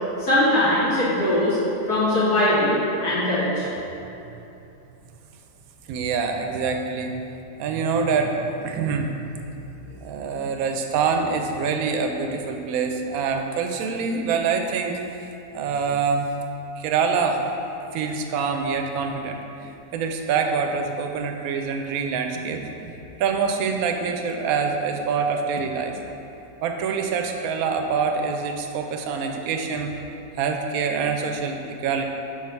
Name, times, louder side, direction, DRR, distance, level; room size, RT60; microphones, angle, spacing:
voice 1, 0.2-1.6 1.9-3.7, left 1 dB, 75° left, -10 dB, 2.3 m, -21 dB
voice 2, 5.9-7.2 7.6-15.0 15.5-16.3 16.8-17.4 17.9-26.0 26.6-29.9 30.4-32.0, right 5 dB, 70° right, 4 dB, 1.0 m, -25 dB
4.7 x 4.5 x 5.7 m, 2.9 s
omnidirectional pair, 1.7 m